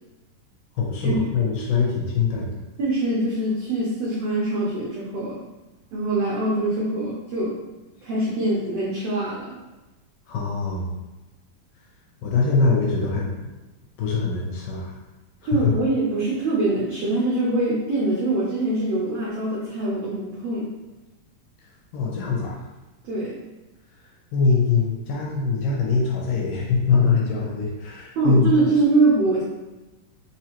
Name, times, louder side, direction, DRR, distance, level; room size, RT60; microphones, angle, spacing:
voice 1, 0.8-2.5 10.3-10.9 12.2-13.3 14.0-15.0 15.4-15.7 21.9-22.6 24.3-28.5, left 4 dB, 75° left, -2 dB, 2.3 m, -22 dB
voice 2, 2.8-5.4 5.9-7.6 8.0-9.6 15.4-20.7 23.0-23.3 28.2-29.4, right 2 dB, 80° right, -6 dB, 1.4 m, -23 dB
5.2 x 3.1 x 3.0 m, 1.1 s
omnidirectional pair, 3.9 m